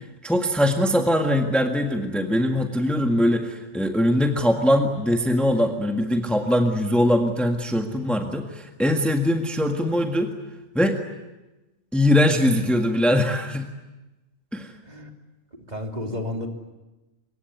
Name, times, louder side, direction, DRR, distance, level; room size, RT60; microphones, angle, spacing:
voice 1, 0.2-10.3 10.8-11.0 11.9-13.6 14.5-14.7, left 1 dB, ahead, 3 dB, 1.7 m, -21 dB
voice 2, 15.5-16.5, left 1 dB, 35° right, 2 dB, 3.1 m, -32 dB
25.5 x 23.5 x 9.5 m, 1.1 s
omnidirectional pair, 1.3 m